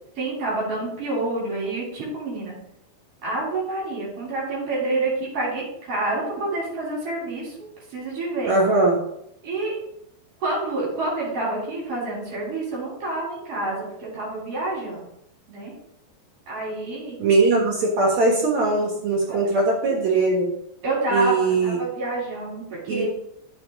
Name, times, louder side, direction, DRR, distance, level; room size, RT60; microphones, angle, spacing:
voice 1, 0.2-2.6 3.2-7.5 7.9-8.5 9.4-9.7 10.4-15.1 15.5-15.7 16.5-17.2 19.3-19.4 20.8-23.1, right 2 dB, 35° right, -6 dB, 3.4 m, -28 dB
voice 2, 8.5-9.0 17.2-20.5 21.1-21.8 22.9-23.1, right 3 dB, 60° right, -1 dB, 2.0 m, -20 dB
12.5 x 6.1 x 3.7 m, 0.76 s
omnidirectional pair, 5.1 m